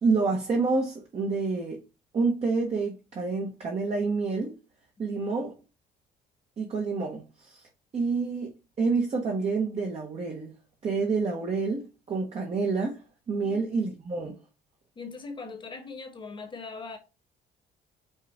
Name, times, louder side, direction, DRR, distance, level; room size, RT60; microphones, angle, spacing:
voice 1, 0.0-1.8 2.1-4.5 5.0-5.5 6.6-7.6 7.9-10.5 10.8-13.0 13.3-14.4, right 4 dB, 40° right, 1.1 m, -28 dB
voice 2, 14.9-17.0, left 4 dB, 30° left, 1.2 m, -40 dB
5.5 x 2.4 x 3.5 m
cardioid pair, 110°, 17 cm